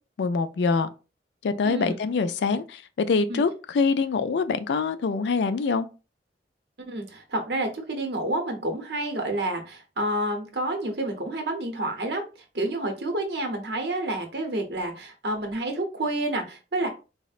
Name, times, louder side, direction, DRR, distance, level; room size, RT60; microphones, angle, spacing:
voice 1, 0.2-0.9 1.4-5.9, left 4 dB, 70° left, 0.3 m, -24 dB
voice 2, 1.6-2.0 3.3-3.4 6.8-12.3 12.5-16.9, right 1 dB, 65° right, 0.8 m, -29 dB
4.0 x 2.0 x 2.4 m
head